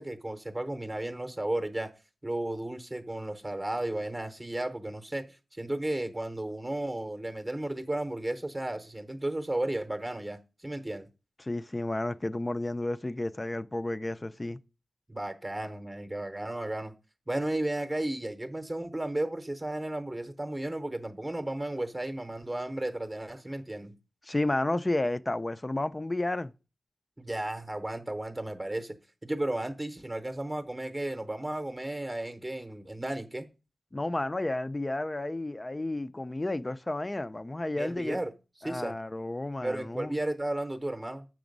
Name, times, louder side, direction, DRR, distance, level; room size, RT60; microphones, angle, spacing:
voice 1, 0.0-1.9 2.2-11.1 15.1-16.9 17.3-23.9 27.2-29.0 29.2-33.5 37.8-38.3 38.6-38.9 39.6-41.3, right 1 dB, 20° right, 0.8 m, -34 dB
voice 2, 11.4-14.6 24.2-26.5 33.9-38.2 38.6-40.2, left 2 dB, 25° left, 0.4 m, -32 dB
6.8 x 6.1 x 5.2 m
wide cardioid pair, 90°, 0 cm